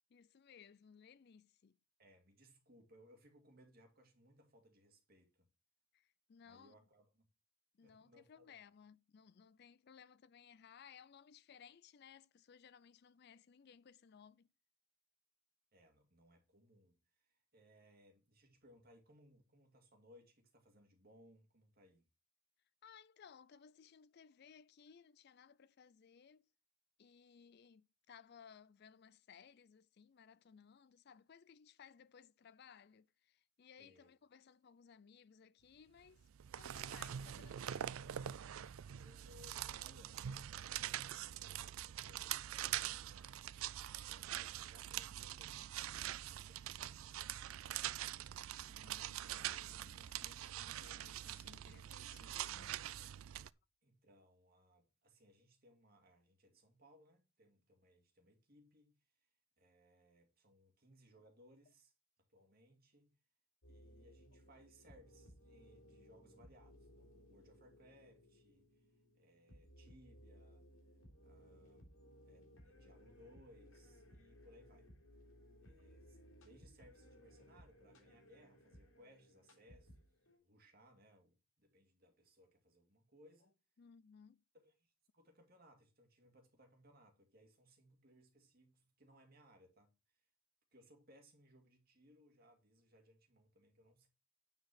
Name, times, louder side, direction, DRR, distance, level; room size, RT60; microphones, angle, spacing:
voice 1, 0.1-1.8 5.9-6.8 7.7-14.5 22.8-26.5 27.0-38.0 48.7-52.8 83.8-84.4, left 7 dB, 50° left, 0.4 m, -62 dB
voice 2, 2.0-5.5 6.4-7.3 7.8-8.6 15.7-22.1 33.8-34.1 39.0-43.6 44.1-47.4 53.8-59.0 59.6-61.9 62.3-63.2 63.7-68.9 69.1-70.7 71.2-72.0 72.2-74.9 75.6-83.6 84.5-89.9 90.7-94.1, equal, 45° right, 2.2 m, -66 dB
sound 1, 36.2-53.5, right 11 dB, 75° right, 0.4 m, -44 dB
sound 2, 63.6-80.4, equal, 85° left, 4.5 m, -62 dB
9.6 x 4.7 x 6.0 m
head